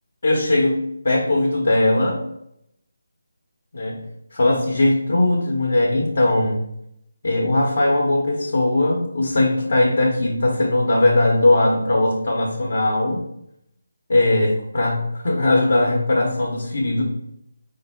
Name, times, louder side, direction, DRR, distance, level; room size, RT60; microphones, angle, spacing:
voice 1, 0.2-2.2 3.7-4.0 4.3-6.6 7.2-13.2 14.1-17.0, left 2 dB, 60° left, -1 dB, 0.7 m, -19 dB
4.3 x 2.1 x 3.4 m, 0.79 s
figure-of-eight pair, 160°, 0 cm